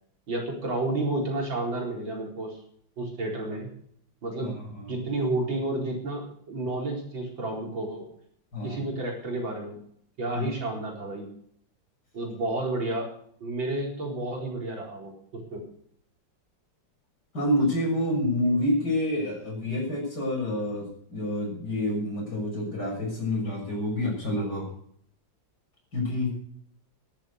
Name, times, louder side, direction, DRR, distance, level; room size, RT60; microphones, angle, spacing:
voice 1, 0.3-2.6 3.0-3.7 4.2-4.6 4.9-8.1 8.6-9.8 10.2-11.3 12.1-13.1 13.4-15.6, right 2 dB, 85° right, 0 dB, 5.1 m, -31 dB
voice 2, 4.4-5.0 8.5-8.8 10.3-10.5 17.3-24.7 25.9-26.3, left 1 dB, 55° left, 0 dB, 7.2 m, -28 dB
13.5 x 12.0 x 6.5 m, 0.64 s
omnidirectional pair, 2.1 m